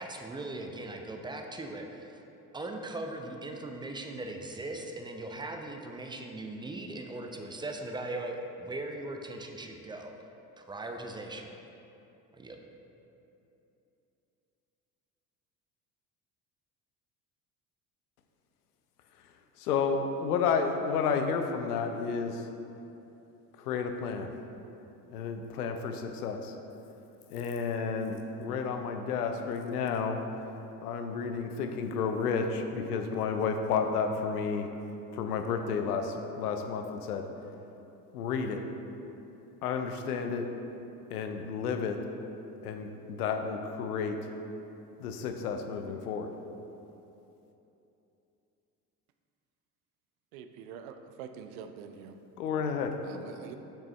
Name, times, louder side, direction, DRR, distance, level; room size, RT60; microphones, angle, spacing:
voice 1, 0.0-2.2 2.5-10.1 10.6-11.5 12.3-12.6, right 2 dB, 10° right, 3 dB, 0.4 m, -39 dB
voice 2, 19.6-22.5 23.6-24.3 25.1-26.5 27.3-30.2 30.8-34.7 35.1-37.2 38.1-38.6 39.6-40.5 41.1-42.0 42.6-44.2 45.0-46.3 52.4-52.9, left 5 dB, 80° left, 6 dB, 0.6 m, -31 dB
voice 3, 50.3-52.1 53.0-53.6, right 7 dB, 65° right, 7 dB, 0.6 m, -45 dB
6.6 x 6.0 x 3.2 m, 2.9 s
hypercardioid pair, 60°, 46 cm